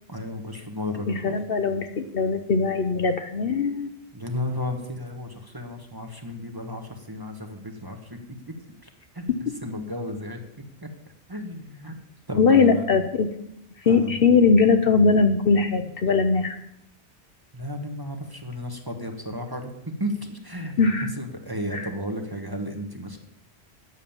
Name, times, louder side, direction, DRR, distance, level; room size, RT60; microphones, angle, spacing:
voice 1, 0.1-1.4 4.1-8.2 9.1-9.2 9.6-10.4 10.8-10.9 11.3-11.9 12.3-12.8 13.8-14.1 17.5-19.7 20.0-20.8 21.2-23.2, left 1 dB, 20° right, 3 dB, 1.2 m, -33 dB
voice 2, 1.1-3.9 9.3-9.4 12.3-13.3 13.8-16.6 20.8-21.1 21.7-21.9, left 4 dB, 60° left, 7 dB, 1.0 m, -20 dB
9.5 x 7.3 x 7.1 m, 0.79 s
omnidirectional pair, 1.1 m